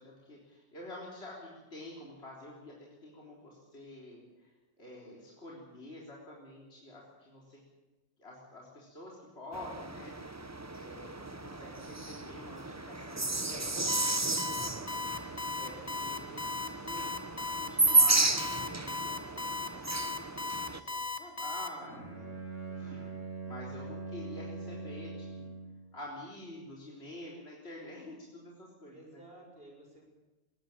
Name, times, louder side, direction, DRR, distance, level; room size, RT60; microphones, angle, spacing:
voice 1, 0.0-2.8 3.0-4.5 4.8-7.6 8.2-10.1 10.7-15.1 15.5-17.1 17.5-22.2 22.7-23.1 23.4-25.5 25.9-29.2, left 1 dB, 55° left, -4 dB, 4.2 m, -48 dB
sound 1, 9.5-20.8, right 2 dB, 15° right, 0.7 m, -32 dB
Alarm, 13.9-21.7, left 4 dB, 30° left, 1.6 m, -36 dB
voice 2, 14.2-15.1 28.9-30.0, right 1 dB, 50° right, 0 dB, 6.2 m, -54 dB
Bowed string instrument, 21.8-25.8, right 3 dB, 80° right, 6.0 m, -42 dB
21.0 x 16.5 x 8.9 m, 1.1 s
omnidirectional pair, 1.3 m